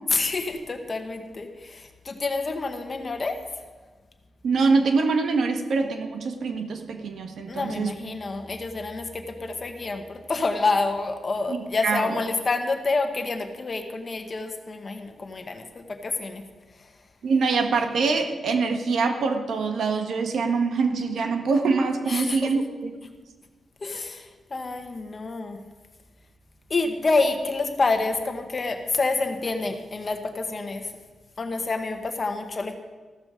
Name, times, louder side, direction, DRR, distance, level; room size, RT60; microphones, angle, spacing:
voice 1, 0.1-3.4 7.5-16.4 16.8-16.9 22.1-22.5 23.8-25.6 26.7-30.9 31.4-32.7, left 3 dB, 35° left, 6 dB, 1.5 m, -28 dB
voice 2, 4.4-7.9 11.5-12.2 17.2-22.9, right 4 dB, 70° right, 5 dB, 1.5 m, -24 dB
14.5 x 13.5 x 5.2 m, 1.4 s
wide cardioid pair, 145°, 0 cm